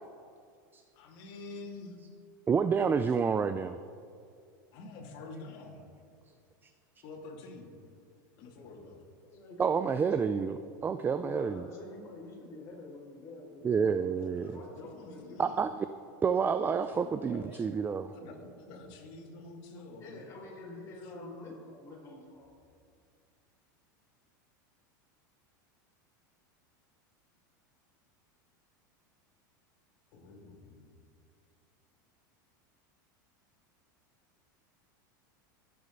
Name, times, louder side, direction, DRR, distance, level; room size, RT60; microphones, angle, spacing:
voice 1, 1.0-1.9 4.7-5.9 7.0-7.7 8.4-9.0 14.3-15.7 16.9-17.6 18.1-20.2 21.0-21.7 30.1-30.9, left 3 dB, 55° left, -1 dB, 2.7 m, -48 dB
voice 2, 2.5-3.8 6.6-6.7 9.6-10.6 10.8-11.7 13.6-14.6 15.4-15.9 16.2-18.1, right 6 dB, 20° right, 11 dB, 0.4 m, -29 dB
voice 3, 9.2-10.4 11.2-14.1 14.5-15.5 20.0-22.5, left 2 dB, 25° left, -4 dB, 4.2 m, -47 dB
23.5 x 8.5 x 4.0 m, 2.3 s
supercardioid pair, 115°, 11 cm